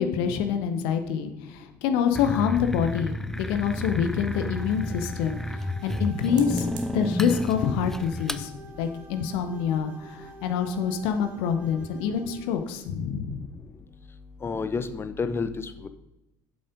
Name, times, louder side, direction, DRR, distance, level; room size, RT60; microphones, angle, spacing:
voice 1, 0.0-6.7 6.9-8.5 8.8-13.5, left 7 dB, 55° left, 7 dB, 0.9 m, -26 dB
sound 1, 2.1-8.4, left 1 dB, 5° left, 0.5 m, -31 dB
sound 2, 3.5-4.3 6.2-7.1 7.8-8.0 8.4-8.5 8.7-9.0, right 8 dB, 65° right, 1.1 m, -48 dB
sound 3, 4.3-12.7, right 3 dB, 20° right, 3.4 m, -48 dB
voice 2, 14.4-15.9, left 4 dB, 25° left, 10 dB, 0.8 m, -30 dB
7.9 x 7.2 x 5.1 m, 0.89 s
figure-of-eight pair, 65°, 10 cm